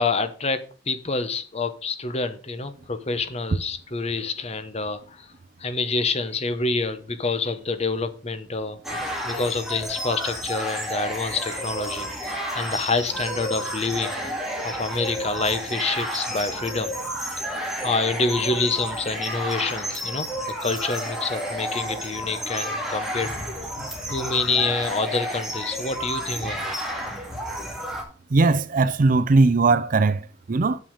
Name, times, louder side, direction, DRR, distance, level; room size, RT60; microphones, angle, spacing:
voice 1, 0.0-5.3 5.6-8.8 9.3-14.1 14.6-16.9 17.8-20.3 20.6-23.3 24.1-26.7, left 3 dB, 35° left, 1.0 m, -27 dB
sound 1, 8.8-28.0, equal, ahead, 2.3 m, -31 dB
voice 2, 28.3-30.2 30.5-30.8, right 3 dB, 45° right, 0.5 m, -19 dB
7.1 x 6.0 x 6.4 m
head